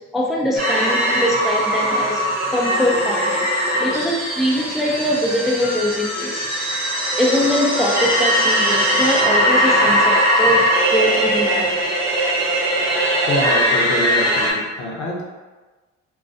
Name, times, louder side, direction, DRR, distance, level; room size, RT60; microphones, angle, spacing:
voice 1, 0.1-2.2 2.5-3.5 3.8-6.6 7.2-11.9, equal, ahead, -3 dB, 0.3 m, -22 dB
sound 1, 0.6-14.5, equal, 30° right, 0.8 m, -20 dB
Harmonica, 4.1-9.7, left 2 dB, 30° left, 0.7 m, -34 dB
voice 2, 13.3-15.2, equal, 65° left, -3 dB, 0.7 m, -25 dB
2.3 x 2.2 x 2.5 m, 1.3 s
cardioid pair, 90°, 30 cm